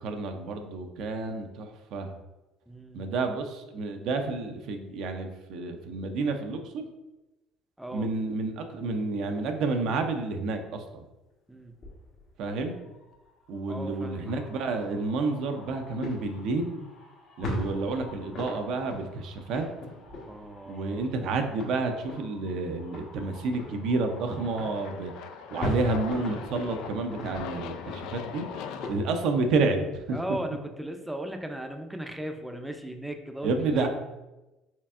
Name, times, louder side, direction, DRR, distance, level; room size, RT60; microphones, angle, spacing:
voice 1, 0.0-2.2 2.9-6.8 7.9-11.1 12.4-12.7 13.5-16.8 17.4-19.7 20.7-25.1 25.5-28.5 28.9-30.2 33.4-33.9, right 3 dB, 65° right, 5 dB, 0.5 m, -30 dB
voice 2, 2.7-3.1 7.8-8.1 11.5-11.8 13.7-14.3 20.3-21.1 27.9-28.0 30.1-33.9, right 1 dB, 5° right, 5 dB, 0.5 m, -37 dB
sound 1, 11.8-29.4, left 1 dB, 55° left, 1.1 m, -40 dB
Aircraft, 23.2-28.9, left 8 dB, 70° left, 0.3 m, -42 dB
4.4 x 3.3 x 2.4 m, 1.0 s
hypercardioid pair, 65°, 0 cm